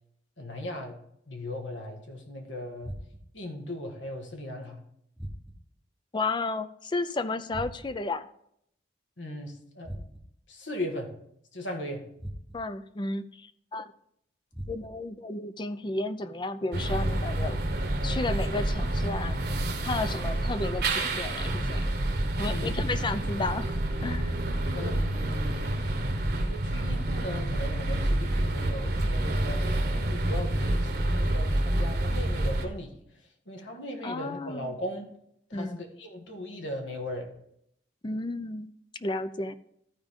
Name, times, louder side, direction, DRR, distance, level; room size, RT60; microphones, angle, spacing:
voice 1, 0.4-1.0 1.3-2.9 3.3-4.8 9.2-10.1 10.5-11.1 11.5-12.1 22.5-23.1 24.7-25.8 26.4-33.0 33.4-35.1 35.5-37.3, left 1 dB, 80° left, 2 dB, 1.7 m, -38 dB
sound 1, 2.8-3.5 5.2-5.8 7.5-8.1 9.8-10.5 12.2-12.8 14.5-15.2 16.9-17.5 19.2-19.9, equal, ahead, 0.9 m, -41 dB
voice 2, 6.1-8.3 12.5-13.9 14.7-17.6 18.0-19.3 19.8-21.8 22.4-23.8 24.0-24.4 34.0-34.7 35.5-35.8 38.0-38.7 39.0-39.6, left 2 dB, 25° left, 12 dB, 0.4 m, -32 dB
sound 2, 16.7-32.7, right 1 dB, 60° right, 1.0 m, -28 dB
13.5 x 4.9 x 3.7 m, 0.72 s
head